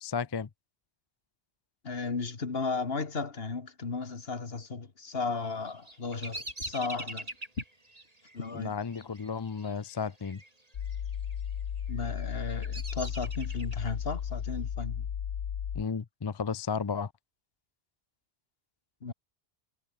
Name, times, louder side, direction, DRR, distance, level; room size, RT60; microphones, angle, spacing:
voice 1, 0.0-0.5 8.5-10.4 15.7-17.1, left 6 dB, 35° left, 0.4 m, -33 dB
voice 2, 1.8-7.3 7.6-7.7 8.3-8.7 11.9-15.1 19.0-19.1, left 4 dB, 60° left, 2.1 m, -35 dB
Bird vocalization bird call bird song, 5.4-10.5 10.7-11.3 11.9-13.9, right 2 dB, 35° right, 3.3 m, -43 dB
sound 1, 10.7-15.8, left 8 dB, 90° left, 1.3 m, -35 dB
omnidirectional pair, 1.2 m